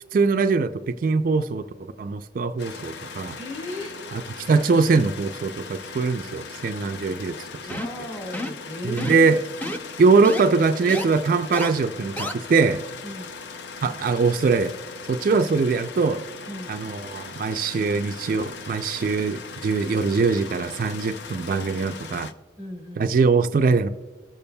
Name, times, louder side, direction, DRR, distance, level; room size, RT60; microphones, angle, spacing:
voice 1, 0.1-1.6 2.0-3.4 4.4-7.8 8.8-9.4 10.0-12.8 13.8-14.7 15.1-16.2 16.7-22.3 23.0-23.9, right 4 dB, 50° right, 0.3 m, -22 dB
sound 1, 2.6-22.3, left 5 dB, 75° left, 0.5 m, -39 dB
voice 2, 3.4-4.0 7.6-9.3 13.0-13.3 16.5-16.7 22.6-23.1, left 1 dB, 25° left, 1.7 m, -36 dB
sound 2, 7.7-8.0 8.3-8.6 9.0-9.3 9.6-9.8 10.2-10.4 10.9-11.0 11.5-11.7 12.2-12.3, left 1 dB, 10° left, 0.5 m, -30 dB
17.5 x 6.9 x 2.2 m
head